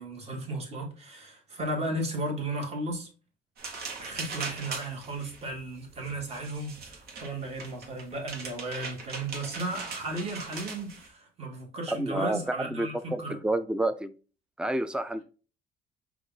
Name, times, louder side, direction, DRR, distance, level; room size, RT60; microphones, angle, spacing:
voice 1, 0.0-3.1 4.0-13.4, right 2 dB, 40° right, 1.7 m, -35 dB
sound 1, 3.6-11.1, right 4 dB, 65° right, 1.3 m, -40 dB
voice 2, 11.9-14.1 14.6-15.2, right 1 dB, 5° right, 0.4 m, -29 dB
4.9 x 2.5 x 3.9 m
cardioid pair, 110°, 17 cm